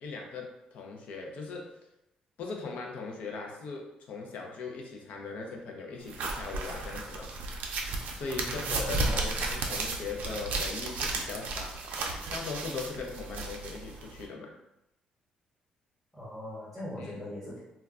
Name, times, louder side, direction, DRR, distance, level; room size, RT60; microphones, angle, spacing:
voice 1, 0.0-1.7 2.4-7.3 8.1-11.8 12.3-14.5 17.0-17.2, left 4 dB, 65° left, 1 dB, 0.5 m, -39 dB
sound 1, 6.1-14.3, right 3 dB, 85° right, 0.4 m, -34 dB
voice 2, 8.4-9.1 16.1-17.6, left 1 dB, 5° left, -9 dB, 0.9 m, -41 dB
2.3 x 2.1 x 3.6 m, 0.87 s
cardioid pair, 175°, 3 cm